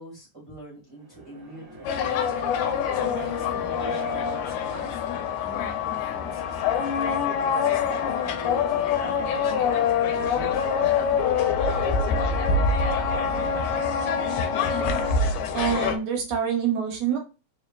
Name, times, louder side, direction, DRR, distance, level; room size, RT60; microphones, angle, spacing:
voice 1, 0.0-7.2 7.6-11.5, right 1 dB, 20° right, -6 dB, 0.9 m, -43 dB
sound 1, 0.9-16.2, right 1 dB, 45° right, 0.5 m, -47 dB
sound 2, 1.8-16.0, left 6 dB, 85° left, 1.9 m, -25 dB
voice 2, 15.5-17.2, right 8 dB, 70° right, 1 dB, 2.0 m, -26 dB
4.5 x 3.0 x 2.3 m, 0.33 s
omnidirectional pair, 3.3 m